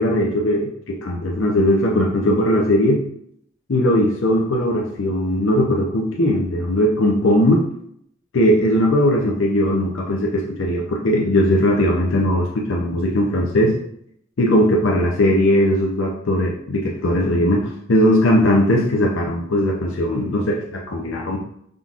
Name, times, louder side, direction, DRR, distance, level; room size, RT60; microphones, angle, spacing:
voice 1, 0.0-3.0 3.7-7.6 8.3-13.8 14.4-21.4, left 1 dB, 65° left, -1 dB, 0.6 m, -19 dB
5.7 x 3.7 x 2.4 m, 0.71 s
head